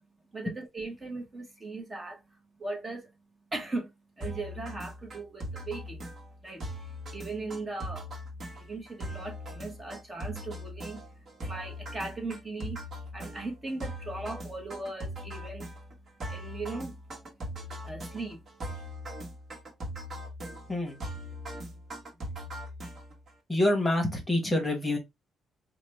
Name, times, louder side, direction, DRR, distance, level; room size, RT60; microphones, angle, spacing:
voice 1, 0.3-2.2 2.6-3.1 3.5-6.1 6.4-8.1 8.5-11.0 11.4-12.8 13.1-15.7 16.3-17.0 17.8-18.4, right 3 dB, 20° right, 0.9 m, -38 dB
sound 1, 4.2-23.3, equal, 40° right, 1.2 m, -40 dB
voice 2, 20.7-21.0 23.5-25.0, left 1 dB, 10° left, 1.1 m, -26 dB
4.8 x 2.1 x 3.2 m
cardioid pair, 135°, 0 cm